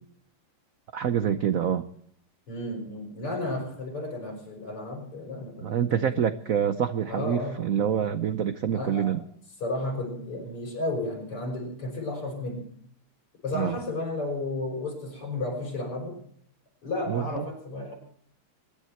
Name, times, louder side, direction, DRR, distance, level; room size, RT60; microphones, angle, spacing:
voice 1, 0.9-1.9 5.6-9.2 13.5-13.8 17.1-17.4, right 8 dB, 85° right, 11 dB, 0.7 m, -26 dB
voice 2, 2.5-6.2 7.0-7.6 8.7-9.1 9.6-12.7 13.4-16.2 16.8-17.9, left 2 dB, 85° left, 0 dB, 6.8 m, -33 dB
23.5 x 11.0 x 4.4 m, 0.65 s
omnidirectional pair, 2.4 m